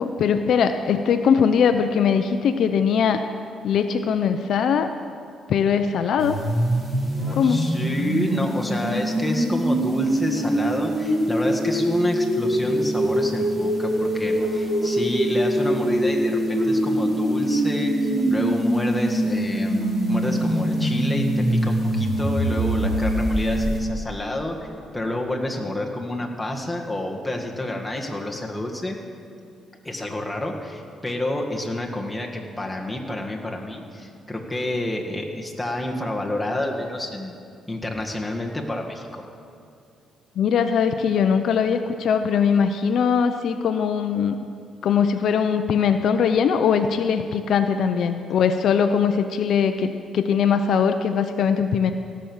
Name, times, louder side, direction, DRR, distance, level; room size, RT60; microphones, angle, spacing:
voice 1, 0.0-3.2 3.6-4.9 5.5-6.4 7.4-7.7 40.4-44.4 44.8-51.9, left 7 dB, 70° left, 8 dB, 0.6 m, -21 dB
sound 1, 6.2-23.8, right 1 dB, 15° right, 3.4 m, -23 dB
voice 2, 7.4-19.8 20.1-24.7 24.9-29.0 29.8-37.4 37.7-39.2, left 1 dB, 5° left, -1 dB, 1.8 m, -29 dB
17.5 x 6.2 x 7.2 m, 2.4 s
cardioid pair, 90°, 0 cm